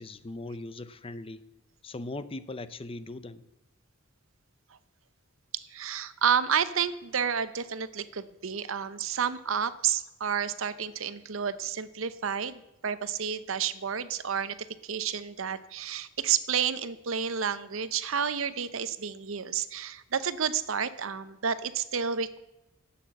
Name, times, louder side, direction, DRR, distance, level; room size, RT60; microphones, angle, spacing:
voice 1, 0.0-1.4 1.8-3.4, left 2 dB, 25° left, 14 dB, 0.6 m, -39 dB
voice 2, 5.5-14.6 14.8-22.4, right 7 dB, 70° right, 14 dB, 0.8 m, -30 dB
12.0 x 8.5 x 7.8 m, 0.94 s
head